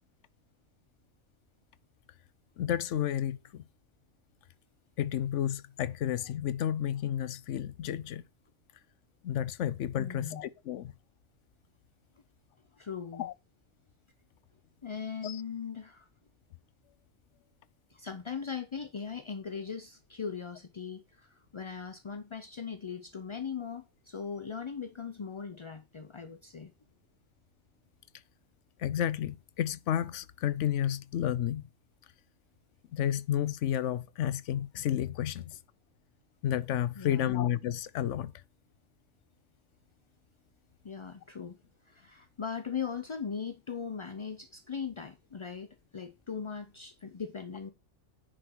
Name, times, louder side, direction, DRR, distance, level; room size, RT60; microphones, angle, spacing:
voice 1, 2.6-3.6 5.0-8.2 9.2-10.9 13.1-13.3 15.2-15.4 28.8-31.7 32.9-35.6 36.4-38.3, left 10 dB, 80° left, 1.0 m, -31 dB
voice 2, 10.0-10.4 12.8-13.3 14.8-16.1 17.9-26.7 37.0-37.3 40.8-41.6 41.9-47.7, left 6 dB, 40° left, 0.5 m, -39 dB
10.0 x 5.1 x 4.5 m
omnidirectional pair, 1.2 m